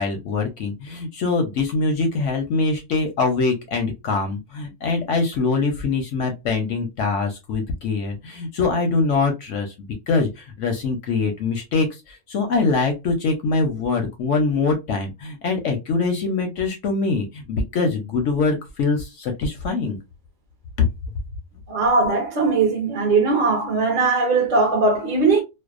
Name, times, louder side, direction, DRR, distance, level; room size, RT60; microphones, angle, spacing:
voice 1, 0.0-20.0 20.8-20.9, left 4 dB, 65° left, 0.8 m, -23 dB
voice 2, 21.7-25.4, right 3 dB, 50° right, 0.5 m, -19 dB
2.6 x 2.1 x 2.3 m
omnidirectional pair, 1.7 m